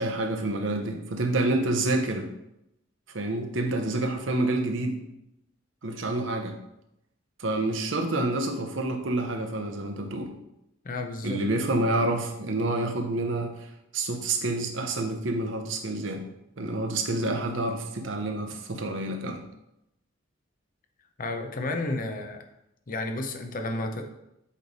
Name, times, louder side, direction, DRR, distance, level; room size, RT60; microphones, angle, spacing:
voice 1, 0.0-2.3 3.1-5.0 5.8-6.5 7.4-10.3 11.2-13.5 13.9-16.2 16.6-19.4, right 2 dB, 75° right, 4 dB, 0.8 m, -28 dB
voice 2, 10.8-11.4 21.2-22.4 22.9-24.1, left 2 dB, 45° left, 5 dB, 0.7 m, -32 dB
8.3 x 3.3 x 4.0 m, 0.84 s
head